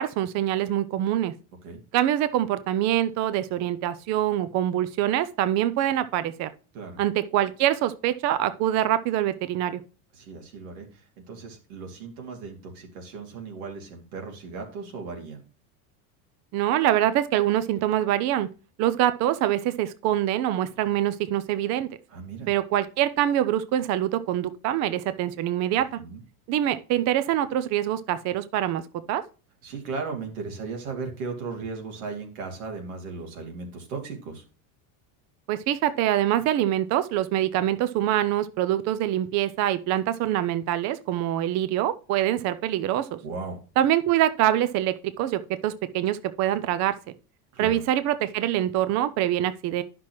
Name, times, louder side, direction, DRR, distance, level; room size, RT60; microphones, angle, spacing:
voice 1, 0.0-1.3 1.9-6.5 7.0-9.8 16.5-18.5 18.8-21.9 22.5-26.0 26.5-28.8 29.1-29.2 35.5-43.2 43.8-47.0 47.6-49.8, right 12 dB, 40° right, 0.5 m, -24 dB
voice 2, 10.1-15.4 22.1-22.5 26.0-26.2 29.6-34.4 43.2-43.6 47.5-47.8, right 4 dB, 90° right, 2.5 m, -36 dB
10.5 x 6.0 x 3.0 m
supercardioid pair, 135°, 42 cm